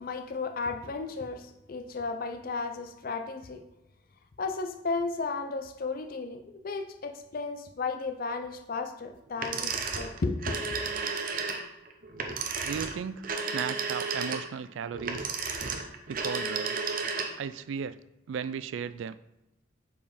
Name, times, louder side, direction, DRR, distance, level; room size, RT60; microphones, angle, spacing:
voice 1, 0.0-3.6 4.4-10.6, left 4 dB, 45° left, 7 dB, 0.5 m, -34 dB
sound 1, 9.4-17.5, right 4 dB, 45° right, 0.7 m, -33 dB
voice 2, 12.6-13.2 13.5-15.3 16.1-16.8 17.4-18.0 18.3-19.2, right 7 dB, 70° right, 15 dB, 0.3 m, -35 dB
5.4 x 4.4 x 5.0 m, 0.90 s
head